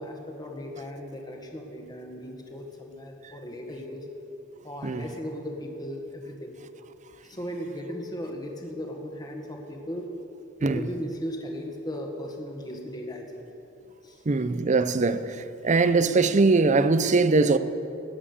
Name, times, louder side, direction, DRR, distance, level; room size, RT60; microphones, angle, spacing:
voice 1, 0.0-4.1 4.6-6.5 7.2-10.1 10.6-13.5 14.0-14.2 15.9-16.0, equal, 20° left, 1.7 m, -37 dB
voice 2, 14.3-17.6, right 3 dB, 35° right, 0.6 m, -21 dB
18.5 x 7.5 x 8.5 m
head